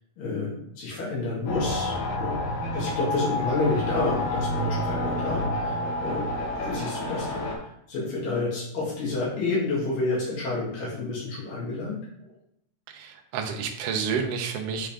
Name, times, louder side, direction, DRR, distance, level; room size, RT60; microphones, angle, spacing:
voice 1, 0.2-2.4 2.7-6.2 6.6-12.3, left 3 dB, 85° left, -7 dB, 3.5 m, -29 dB
sound 1, 1.5-7.6, left 1 dB, 70° left, 2.5 m, -29 dB
voice 2, 12.9-14.9, right 6 dB, 80° right, 2 dB, 1.3 m, -29 dB
7.9 x 3.6 x 3.5 m, 0.74 s
omnidirectional pair, 3.8 m